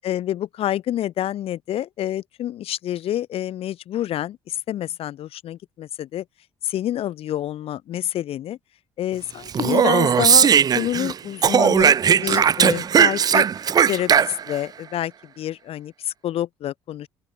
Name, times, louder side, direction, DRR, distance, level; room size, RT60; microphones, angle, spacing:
voice 1, 0.0-6.2 6.6-8.6 9.0-10.5 10.7-13.4 13.9-17.1, left 12 dB, 50° left, 0.9 m, -28 dB
Speech, 9.5-11.1 11.4-14.6, right 8 dB, 30° right, 0.4 m, -17 dB
open air
figure-of-eight pair, 50°, 13 cm